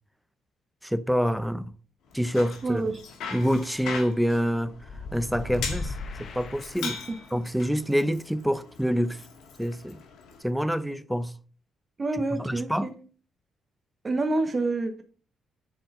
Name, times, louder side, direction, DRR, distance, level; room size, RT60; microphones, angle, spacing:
voice 1, 0.8-1.7 2.1-2.8 3.3-4.8 5.1-5.9 6.2-6.9 7.3-9.2 9.6-10.0 10.4-11.3 12.4-12.9, equal, ahead, 0.6 m, -26 dB
Bicycle, 2.1-10.4, left 5 dB, 80° left, 1.8 m, -41 dB
voice 2, 2.6-3.0 6.8-7.4 12.0-12.9 14.0-15.0, right 2 dB, 30° right, 1.1 m, -28 dB
sound 1, 4.8-7.4, left 3 dB, 60° left, 1.3 m, -37 dB
7.7 x 4.5 x 5.6 m
cardioid pair, 90°, 0 cm